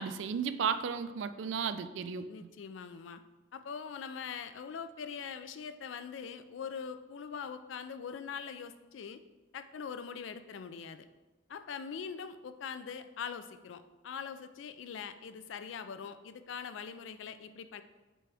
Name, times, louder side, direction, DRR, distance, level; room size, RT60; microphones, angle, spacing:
voice 1, 0.0-2.3, right 6 dB, 80° right, 12 dB, 0.4 m, -34 dB
voice 2, 2.3-3.2 3.5-9.2 9.5-11.1 11.5-17.8, left 6 dB, 85° left, 10 dB, 0.4 m, -42 dB
6.1 x 4.5 x 3.4 m, 1.2 s
head